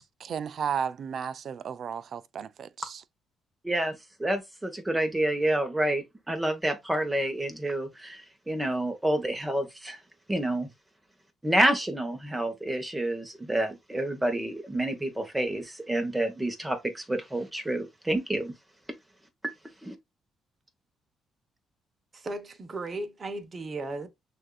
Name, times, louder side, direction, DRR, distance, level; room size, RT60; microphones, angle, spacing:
voice 1, 0.0-3.0, right 7 dB, 60° right, 0.4 m, -34 dB
voice 2, 3.6-3.9 4.2-10.0 10.3-10.7 11.4-18.5 19.4-19.5 19.8-20.0, right 1 dB, 10° right, 1.1 m, -28 dB
voice 3, 22.1-24.1, right 2 dB, 35° right, 0.9 m, -36 dB
6.2 x 2.6 x 2.3 m
cardioid pair, 90°, 0 cm